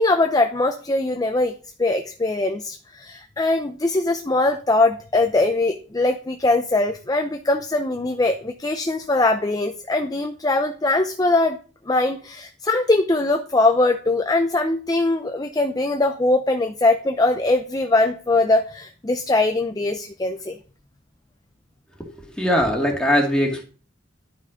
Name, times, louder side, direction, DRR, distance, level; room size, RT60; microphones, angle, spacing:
voice 1, 0.0-1.5 1.8-11.6 11.9-20.6, left 2 dB, 20° left, 6 dB, 0.6 m, -21 dB
voice 2, 22.0-23.6, equal, 5° left, 0 dB, 2.2 m, -21 dB
11.0 x 5.6 x 5.0 m, 0.38 s
head